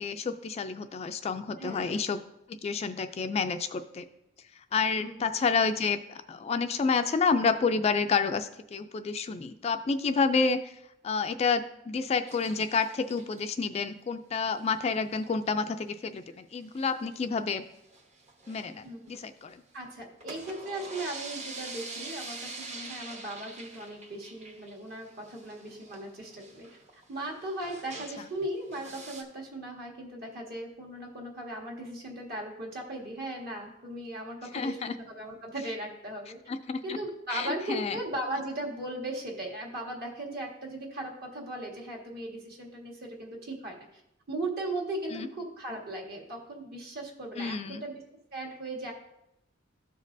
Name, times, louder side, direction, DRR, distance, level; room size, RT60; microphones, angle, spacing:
voice 1, 0.0-2.2 2.5-4.1 4.7-10.7 11.0-17.6 18.5-19.6 34.5-34.9 36.5-37.0 37.3-38.0 45.1-45.3 47.4-47.8, left 5 dB, 35° left, 9 dB, 0.3 m, -29 dB
voice 2, 1.6-2.0 5.0-5.3 18.8-19.1 19.7-26.7 27.1-36.4 36.8-44.0 44.3-48.0 48.3-48.9, right 1 dB, 55° right, -1 dB, 1.7 m, -38 dB
sound 1, 12.3-13.4 14.6-14.9 15.2-15.3 15.5-15.6 15.9-16.0 16.6-17.2 17.6-19.5 20.0-28.4 28.7-29.2, right 3 dB, 40° right, 1.0 m, -45 dB
13.0 x 5.2 x 2.6 m, 0.83 s
head